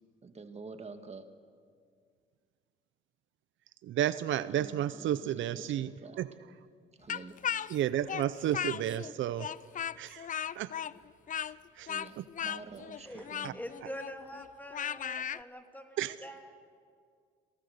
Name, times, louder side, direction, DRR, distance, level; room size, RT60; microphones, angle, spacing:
voice 1, 0.2-1.3 4.5-6.2 7.0-7.4 11.9-13.6, right 4 dB, 35° right, 7 dB, 1.7 m, -48 dB
voice 2, 3.8-5.9 6.2-6.3 7.7-9.5 10.0-10.3 10.6-10.7 11.4-11.5 11.8-11.9 12.2-12.3 13.4-13.5 16.0-16.2, right 11 dB, 75° right, 15 dB, 0.7 m, -32 dB
Speech, 7.1-9.1 9.4-15.4, left 8 dB, 40° left, 0.5 m, -36 dB
voice 3, 13.0-16.4, equal, 10° left, 5 dB, 2.3 m, -45 dB
28.0 x 18.5 x 6.6 m, 2.1 s
cardioid pair, 90°, 20 cm